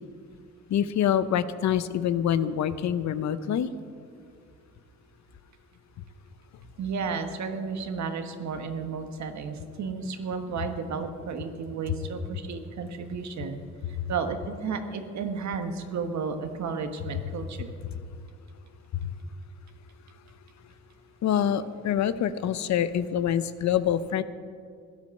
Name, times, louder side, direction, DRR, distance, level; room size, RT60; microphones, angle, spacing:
voice 1, 0.7-3.7 19.0-19.1 21.2-24.2, left 9 dB, 65° left, 13 dB, 0.8 m, -26 dB
voice 2, 6.8-13.6 14.1-17.7, right 5 dB, 65° right, 7 dB, 1.5 m, -33 dB
16.0 x 10.5 x 6.5 m, 2.2 s
cardioid pair, 90°, 30 cm